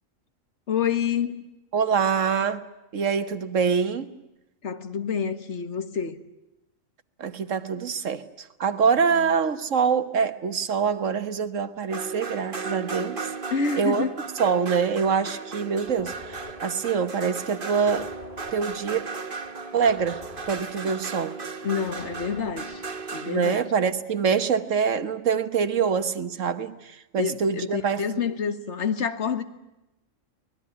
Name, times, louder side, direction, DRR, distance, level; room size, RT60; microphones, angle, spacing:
voice 1, 0.7-1.5 4.6-6.2 9.1-9.3 13.5-14.1 20.8-20.9 21.6-22.8 23.1-23.6 27.2-29.4, left 6 dB, 60° left, 1.8 m, -28 dB
voice 2, 1.7-2.6 2.9-4.1 7.2-13.3 13.8-14.0 14.4-18.1 18.5-19.0 19.7-20.2 20.5-21.4 23.3-28.0, right 6 dB, 75° right, 1.6 m, -25 dB
sound 1, 11.9-23.7, right 4 dB, 45° right, 1.6 m, -36 dB
sound 2, 15.8-23.1, left 2 dB, 45° left, 3.8 m, -46 dB
24.5 x 20.0 x 9.6 m
omnidirectional pair, 1.3 m